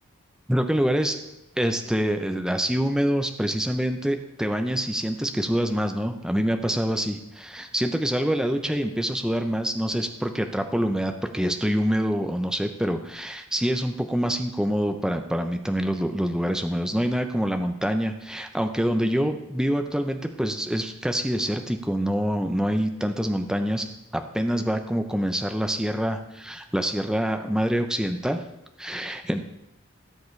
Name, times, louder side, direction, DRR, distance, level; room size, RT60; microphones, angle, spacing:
voice 1, 0.5-1.2 1.6-23.9 24.1-28.4 28.8-29.5, equal, 5° right, 6 dB, 0.5 m, -26 dB
17.5 x 7.2 x 3.2 m, 0.87 s
head